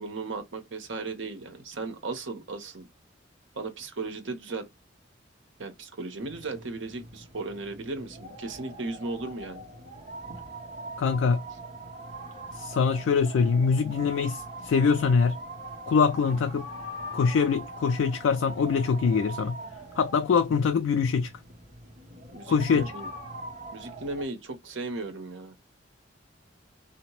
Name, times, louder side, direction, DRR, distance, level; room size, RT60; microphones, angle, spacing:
voice 1, 0.0-2.9 3.5-4.7 5.6-9.7 22.3-23.1 23.7-25.6, right 3 dB, 75° right, 0.8 m, -36 dB
sound 1, 6.2-24.2, right 1 dB, 40° right, 0.9 m, -42 dB
voice 2, 11.0-11.4 12.5-15.4 15.9-16.7 17.1-19.6 20.0-21.3 22.5-22.9, left 5 dB, 80° left, 0.3 m, -24 dB
2.8 x 2.0 x 3.0 m
head